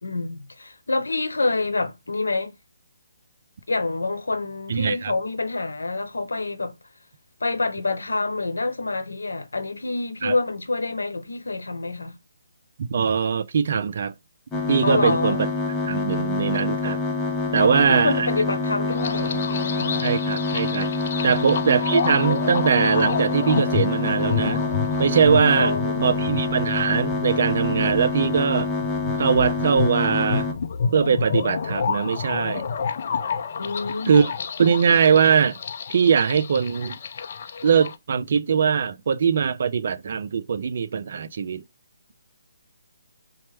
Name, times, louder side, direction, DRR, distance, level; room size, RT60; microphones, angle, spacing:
voice 1, 0.0-2.5 3.7-6.7 7.4-12.1 14.8-15.4 17.6-20.0 21.2-21.4 25.6-26.3 33.6-34.3, left 3 dB, 90° left, 0.9 m, -27 dB
voice 2, 4.7-5.1 10.2-10.3 12.9-14.1 14.7-15.5 15.8-17.0 17.5-18.3 20.0-20.9 21.2-24.6 25.0-25.7 26.0-28.7 29.2-30.5 30.9-32.7 34.1-34.3 34.6-35.6 35.9-37.0 37.6-41.6, right 6 dB, 55° right, 0.4 m, -21 dB
sound 1, 14.5-30.5, left 3 dB, 10° left, 0.8 m, -26 dB
sound 2, 18.9-37.9, left 6 dB, 50° left, 0.4 m, -30 dB
4.2 x 2.1 x 3.2 m
hypercardioid pair, 155°, 0 cm